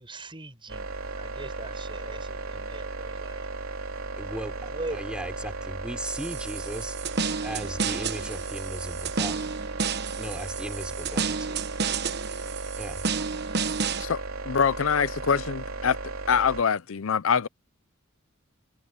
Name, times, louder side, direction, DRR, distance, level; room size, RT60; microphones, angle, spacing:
voice 1, 0.0-3.5 4.6-5.0, right 2 dB, 25° right, 7.8 m, -41 dB
sound 1, 0.7-16.6, right 3 dB, 85° right, 3.5 m, -36 dB
voice 2, 4.2-7.0 7.4-9.4 10.2-11.7 12.8-13.0, equal, 5° right, 5.5 m, -37 dB
sound 2, 6.0-14.0, right 5 dB, 55° right, 1.1 m, -31 dB
voice 3, 14.0-16.0 16.3-17.5, left 6 dB, 70° left, 0.6 m, -24 dB
head